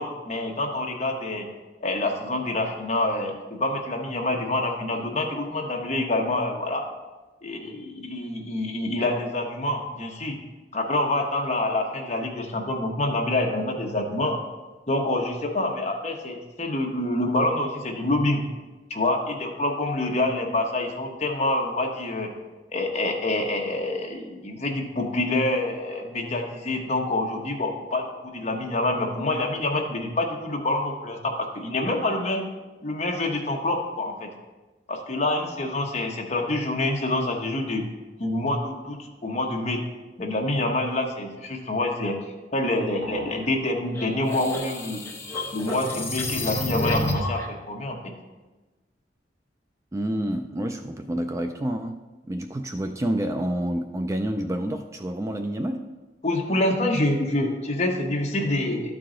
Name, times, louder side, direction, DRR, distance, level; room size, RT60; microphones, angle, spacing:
voice 1, 0.0-1.5 1.8-6.9 7.4-10.4 10.7-14.4 14.9-18.4 18.9-22.3 22.7-32.4 32.8-34.3 34.9-37.8 38.2-39.8 40.2-42.1 42.5-45.0 45.5-48.0 56.2-59.0, left 2 dB, 40° left, 1 dB, 1.1 m, -26 dB
sound 1, 43.0-43.5 47.0-47.5, right 1 dB, 85° right, 1.2 m, -37 dB
sound 2, 43.9-47.4, left 1 dB, 15° left, 0.9 m, -29 dB
voice 2, 49.9-52.0 52.3-55.9, right 1 dB, 15° right, 6 dB, 0.3 m, -28 dB
12.5 x 4.7 x 3.8 m, 1.2 s
head